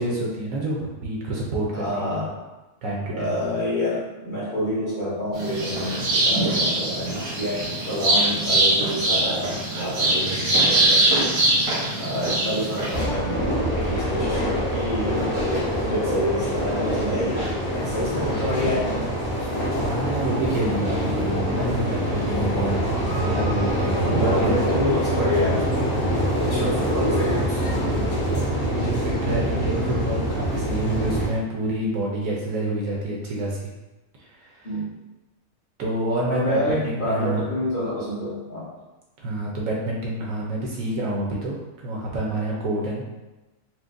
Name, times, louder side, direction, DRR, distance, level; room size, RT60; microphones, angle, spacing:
voice 1, 0.0-2.2 2.8-3.3 11.9-12.1 19.8-22.8 23.2-24.8 26.0-26.8 27.8-33.7 34.2-34.7 35.8-37.4 39.2-43.0, right 1 dB, 70° right, -3 dB, 0.9 m, -28 dB
voice 2, 1.7-2.4 3.1-11.2 12.0-18.9 24.0-25.7 26.3-27.6 34.6-34.9 36.2-38.7, left 1 dB, 40° left, -9 dB, 0.9 m, -28 dB
sound 1, 5.3-13.1, right 1 dB, 85° right, 1.5 m, -22 dB
sound 2, 12.9-31.3, equal, 80° left, 1.6 m, -25 dB
4.4 x 2.1 x 2.5 m, 1.1 s
omnidirectional pair, 1.6 m